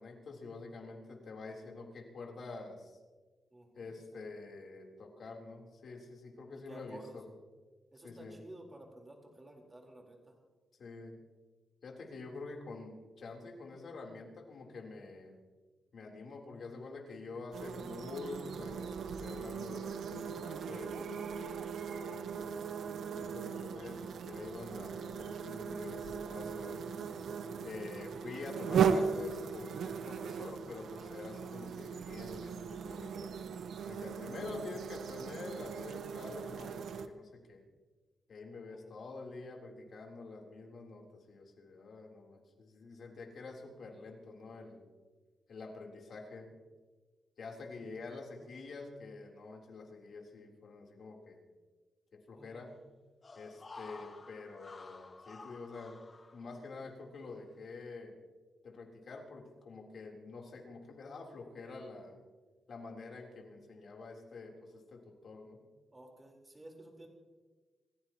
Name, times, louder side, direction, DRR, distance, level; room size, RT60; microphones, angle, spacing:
voice 1, 0.0-3.0 3.8-7.3 8.0-8.4 10.7-11.2 11.8-15.4 15.9-21.0 21.9-22.3 23.1-26.8 27.6-33.3 33.9-37.6 38.3-44.9 45.5-46.5 47.4-51.4 52.1-52.7 53.4-56.0 56.3-58.2 58.6-62.2 62.7-65.6, left 3 dB, 60° left, 0 dB, 3.6 m, -47 dB
voice 2, 3.5-3.9 6.7-7.2 7.9-10.2 27.2-27.4 38.7-38.9 52.4-52.7 65.9-67.1, right 1 dB, 20° right, 0 dB, 4.2 m, -53 dB
sound 1, 17.5-37.1, right 6 dB, 80° right, 1.0 m, -38 dB
sound 2, 53.2-56.9 57.3-57.4, left 3 dB, 35° left, 1.0 m, -52 dB
28.0 x 15.5 x 3.0 m, 1.3 s
cardioid pair, 100°, 0 cm